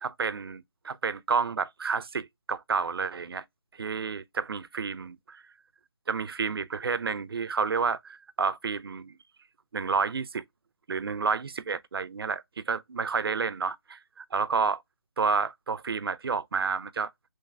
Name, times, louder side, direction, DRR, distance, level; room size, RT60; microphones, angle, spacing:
voice 1, 0.0-3.4 3.8-5.4 6.1-9.1 9.7-10.4 10.9-14.8 15.2-17.1, right 5 dB, 60° right, 0.4 m, -30 dB
3.2 x 3.2 x 2.2 m
figure-of-eight pair, 165°, 14 cm